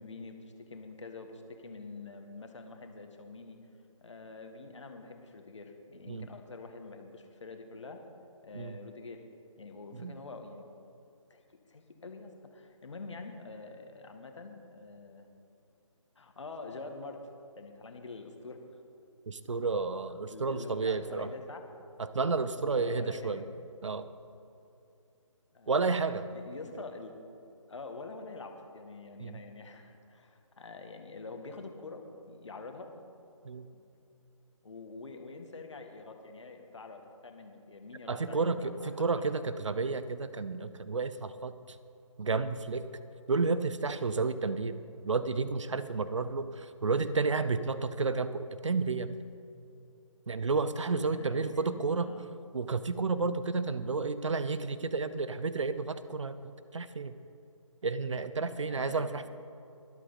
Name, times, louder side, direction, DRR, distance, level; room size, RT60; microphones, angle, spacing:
voice 1, 0.0-3.6 4.0-8.0 8.4-9.2 9.6-10.7 11.3-11.4 11.7-15.3 16.1-17.3 17.6-18.6 20.3-21.7 22.7-23.5 25.5-25.8 26.3-27.1 27.7-33.1 33.7-33.8 34.6-39.5 51.0-52.2 58.5-59.1, left 3 dB, 60° left, 5 dB, 1.8 m, -46 dB
voice 2, 19.3-21.3 22.0-23.4 23.8-24.1 25.7-26.3 29.2-29.4 33.4-33.7 38.1-41.5 42.2-42.9 43.3-44.7 45.0-49.1 50.3-52.1 52.5-57.2 57.8-59.3, right 4 dB, 65° right, 13 dB, 0.8 m, -31 dB
23.5 x 8.3 x 4.1 m, 2.6 s
figure-of-eight pair, 150°, 17 cm